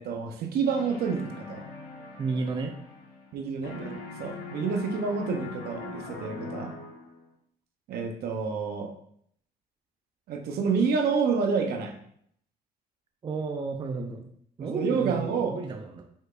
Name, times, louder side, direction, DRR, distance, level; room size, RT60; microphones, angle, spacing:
voice 1, 0.0-1.7 3.3-6.7 7.9-8.9 10.3-11.9 14.6-15.6, right 5 dB, 65° right, 4 dB, 0.8 m, -28 dB
sound 1, 0.6-3.4 3.6-7.2, left 3 dB, 70° left, 1.3 m, -41 dB
voice 2, 2.2-2.8 13.2-14.3 14.6-16.0, right 4 dB, 30° right, 4 dB, 0.5 m, -32 dB
5.2 x 4.0 x 2.5 m, 0.67 s
cardioid pair, 110°, 17 cm